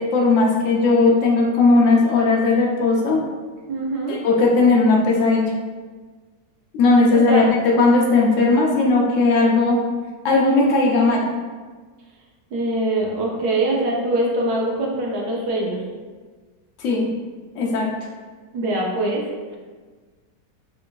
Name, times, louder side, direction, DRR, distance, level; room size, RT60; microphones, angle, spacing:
voice 1, 0.0-3.2 4.1-5.4 6.7-9.8 10.2-11.3 16.8-17.1 17.6-17.9, left 3 dB, 80° left, -2 dB, 0.7 m, -17 dB
voice 2, 3.7-4.2 7.1-7.4 12.5-15.8 18.5-19.2, right 1 dB, 70° right, -2 dB, 1.1 m, -23 dB
3.4 x 2.4 x 3.0 m, 1.4 s
omnidirectional pair, 1.9 m